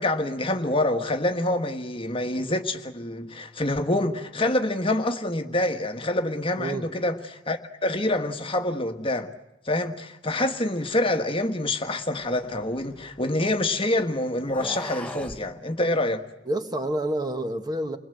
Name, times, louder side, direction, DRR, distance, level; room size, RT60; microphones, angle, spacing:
voice 1, 0.0-9.3 9.6-16.2, left 1 dB, 30° left, 1.4 m, -26 dB
voice 2, 6.6-6.9 16.5-18.0, right 1 dB, 20° right, 1.8 m, -28 dB
sound 1, 12.2-13.7 14.4-15.4, left 1 dB, 5° left, 1.4 m, -39 dB
29.5 x 21.5 x 7.9 m
head